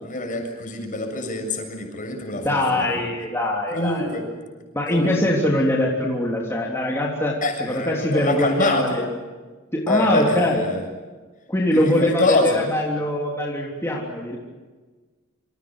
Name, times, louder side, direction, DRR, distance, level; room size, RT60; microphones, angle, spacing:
voice 1, 0.0-2.9 3.7-4.2 4.9-5.2 7.4-9.1 9.9-10.8 11.7-12.6, left 2 dB, 40° left, 4 dB, 7.2 m, -25 dB
voice 2, 2.4-4.1 4.7-9.0 9.7-10.6 11.5-14.4, left 1 dB, 15° left, -3 dB, 3.4 m, -23 dB
28.5 x 27.0 x 6.5 m, 1.3 s
head